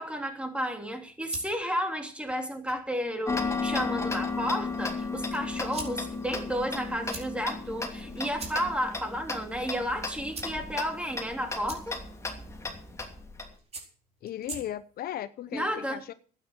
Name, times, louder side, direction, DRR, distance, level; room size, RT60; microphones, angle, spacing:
voice 1, 0.0-12.0 15.5-16.0, equal, 5° right, 3.1 m, -32 dB
sound 1, 0.9-15.1, right 3 dB, 40° right, 4.4 m, -48 dB
Tick-tock, 3.3-13.5, left 3 dB, 15° left, 2.9 m, -34 dB
voice 2, 14.2-16.1, left 11 dB, 65° left, 0.8 m, -36 dB
12.0 x 9.3 x 7.7 m
cardioid pair, 110°, 17 cm